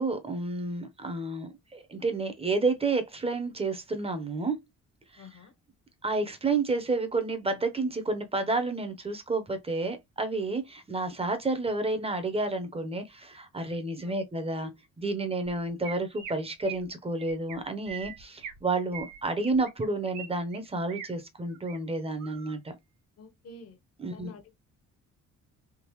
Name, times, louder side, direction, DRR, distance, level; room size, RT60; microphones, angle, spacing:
voice 1, 0.0-4.6 5.1-5.3 6.0-14.7 15.0-22.7 24.0-24.3, right 3 dB, 20° right, 0.9 m, -30 dB
voice 2, 5.2-5.5 14.0-14.1 23.2-23.8 24.1-24.5, left 2 dB, 55° left, 1.0 m, -48 dB
Chirp tweet, 15.4-15.5 15.8-16.3 16.6-16.9 17.2-17.6 17.9-18.6 18.9-20.3 20.5-21.1 21.5-21.8 22.2-22.6, right 8 dB, 90° right, 1.0 m, -42 dB
3.7 x 2.4 x 3.0 m
cardioid pair, 90°, 30 cm